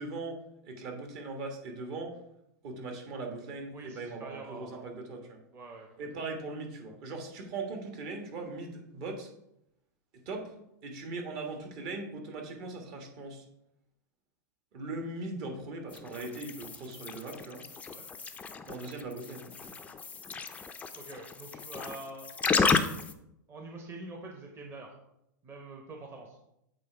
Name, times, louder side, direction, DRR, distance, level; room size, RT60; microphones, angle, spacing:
voice 1, 0.0-2.2 2.6-5.4 6.0-9.3 10.2-10.5 10.8-13.4 14.7-17.6 18.7-19.7, right 3 dB, 50° right, 2 dB, 1.5 m, -39 dB
voice 2, 3.7-4.9 5.5-5.9 17.9-18.1 21.0-22.3 23.5-24.9 25.4-26.4, right 2 dB, 25° right, 1 dB, 1.0 m, -45 dB
sound 1, 15.9-23.1, left 5 dB, 15° left, 0.4 m, -33 dB
7.5 x 3.3 x 4.6 m, 0.81 s
hypercardioid pair, 120°, 10 cm